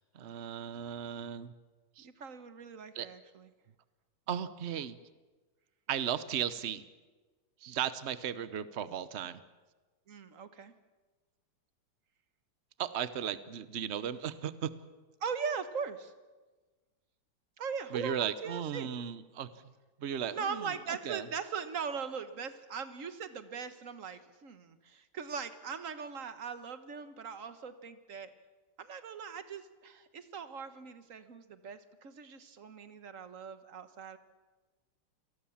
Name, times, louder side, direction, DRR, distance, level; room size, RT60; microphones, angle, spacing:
voice 1, 0.1-1.5 2.0-2.1 2.9-3.1 4.3-5.0 5.9-6.8 7.6-9.4 12.8-14.7 17.9-19.5 20.0-21.2, right 9 dB, 90° right, 14 dB, 0.5 m, -36 dB
voice 2, 2.0-3.5 10.1-10.7 15.2-16.1 17.6-18.9 20.3-28.3 28.8-34.2, right 6 dB, 45° right, 11 dB, 1.4 m, -40 dB
27.0 x 18.5 x 7.2 m, 1.3 s
omnidirectional pair, 2.4 m